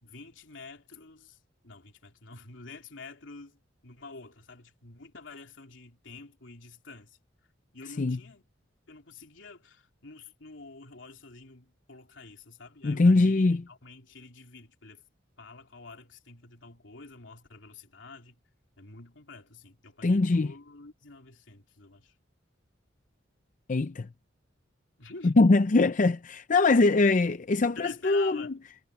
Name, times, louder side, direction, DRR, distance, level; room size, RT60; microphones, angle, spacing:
voice 1, 0.0-7.2 7.7-8.4 8.9-15.0 15.4-18.4 18.8-22.1 25.0-25.3 27.8-28.7, left 4 dB, 80° left, 3.1 m, -48 dB
voice 2, 12.8-13.6 20.0-20.5 23.7-24.1 25.2-28.5, left 3 dB, 40° left, 0.5 m, -22 dB
head